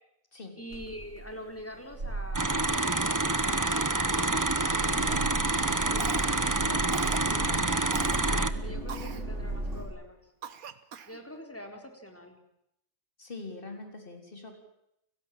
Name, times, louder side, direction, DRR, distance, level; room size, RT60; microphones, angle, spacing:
voice 1, 0.6-6.8 8.3-10.3 11.1-12.4, equal, 10° left, 4 dB, 4.1 m, -45 dB
sound 1, 0.7-9.8, right 2 dB, 55° right, 5.8 m, -36 dB
sound 2, 2.3-8.5, right 2 dB, 15° right, 0.8 m, -27 dB
Cough, 6.0-6.5 6.9-7.3 7.9-8.2 8.9-9.2 9.8-9.9 10.4-11.2, right 8 dB, 85° right, 1.6 m, -41 dB
voice 2, 7.3-7.8 13.2-14.6, left 3 dB, 40° left, 5 dB, 4.0 m, -43 dB
30.0 x 17.0 x 7.5 m, 0.80 s
omnidirectional pair, 1.5 m